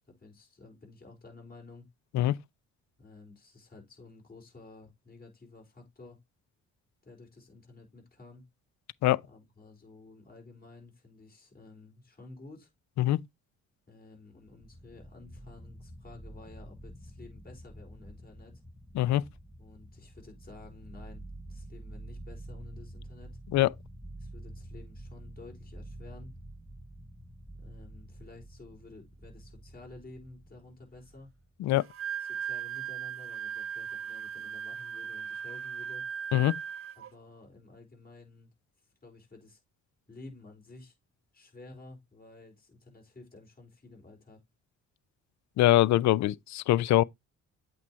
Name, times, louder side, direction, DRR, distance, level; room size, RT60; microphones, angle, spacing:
voice 1, 0.1-1.9 3.0-6.2 7.0-8.5 9.2-12.7 13.9-18.6 19.6-21.2 21.5-23.4 24.2-26.3 27.5-31.3 32.2-36.1 37.0-38.5 38.8-39.6 40.1-41.0 41.3-44.4, left 3 dB, 30° left, 4.1 m, -52 dB
sound 1, 14.3-31.7, right 1 dB, ahead, 0.6 m, -48 dB
Wind instrument woodwind instrument, 31.8-37.1, right 8 dB, 45° right, 0.5 m, -38 dB
voice 2, 45.6-47.0, left 15 dB, 70° left, 0.5 m, -23 dB
8.2 x 3.0 x 4.3 m
cardioid pair, 90°, 30 cm